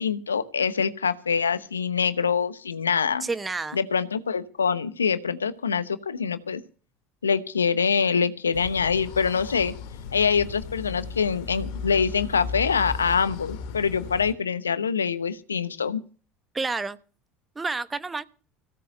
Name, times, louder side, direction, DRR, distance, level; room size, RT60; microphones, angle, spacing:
voice 1, 0.0-3.3 3.7-6.6 7.2-9.7 10.1-16.0, left 6 dB, 85° left, 15 dB, 0.9 m, -25 dB
voice 2, 3.2-3.8 16.5-17.0 17.5-18.2, right 3 dB, 20° right, 15 dB, 1.1 m, -29 dB
sound 1, 8.5-14.3, left 5 dB, 60° left, 1.8 m, -36 dB
16.5 x 8.3 x 6.6 m, 0.39 s
figure-of-eight pair, 65°, 0 cm